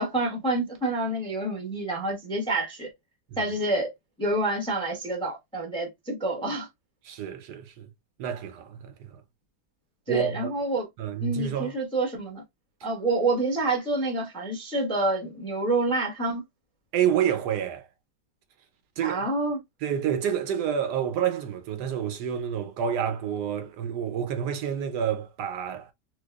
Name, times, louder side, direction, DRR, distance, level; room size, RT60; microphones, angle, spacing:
voice 1, 0.0-2.9 3.4-3.9 4.2-6.7 10.1-10.9 11.2-12.4 12.8-16.4 19.0-19.6, right 2 dB, 5° left, 0.5 m, -27 dB
voice 2, 7.0-7.9 8.2-9.1 10.1-10.5 11.0-11.7 16.9-17.9 19.0-19.3 19.8-25.9, right 9 dB, 75° right, 1.2 m, -28 dB
4.5 x 2.3 x 2.2 m
omnidirectional pair, 1.8 m